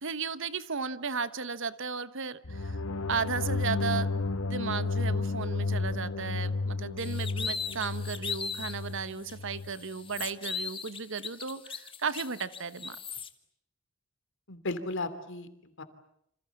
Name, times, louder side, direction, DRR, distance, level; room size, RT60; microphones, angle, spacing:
voice 1, 0.0-2.8 3.1-4.2 4.5-13.0, right 5 dB, 65° right, 14 dB, 1.2 m, -35 dB
sound 1, 2.5-9.7, left 3 dB, 80° left, 1.2 m, -32 dB
sound 2, 7.0-8.8 9.2-9.3 9.7-13.3, left 6 dB, 25° left, 1.5 m, -38 dB
voice 2, 14.5-15.8, left 2 dB, 65° left, 11 dB, 2.9 m, -35 dB
28.0 x 26.5 x 7.3 m, 0.74 s
head